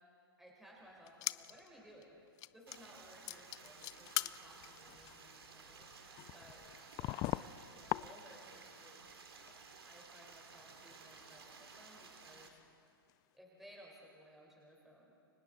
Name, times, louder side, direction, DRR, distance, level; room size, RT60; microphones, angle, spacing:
voice 1, 0.4-2.2 2.5-5.9 6.3-6.7 7.0-9.2 9.8-12.6 13.3-15.1, equal, ahead, -3 dB, 4.1 m, -59 dB
sound 1, 1.1-1.7 2.0-2.1 2.4-3.0 3.3-8.5 8.8-9.6 9.8-9.9 10.5-12.7 13.1-13.2, left 18 dB, 30° left, 0.4 m, -43 dB
Stream, 2.7-12.5, right 5 dB, 80° right, 2.5 m, -56 dB
29.5 x 24.5 x 4.0 m, 2.6 s
hypercardioid pair, 115°, 13 cm